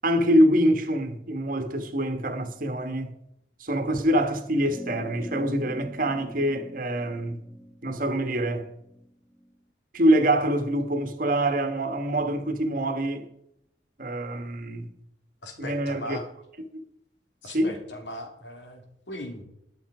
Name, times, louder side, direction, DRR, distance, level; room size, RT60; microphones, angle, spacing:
voice 1, 0.0-3.1 3.6-7.4 7.8-8.7 9.9-13.3 14.0-14.9 15.6-16.2 16.7-16.8 17.5-17.8, right 1 dB, 50° right, 1.4 m, -25 dB
sound 1, 4.7-9.5, right 1 dB, ahead, 0.9 m, -43 dB
voice 2, 15.4-16.3 17.4-19.4, left 1 dB, 80° left, 2.8 m, -38 dB
12.5 x 10.5 x 4.9 m
head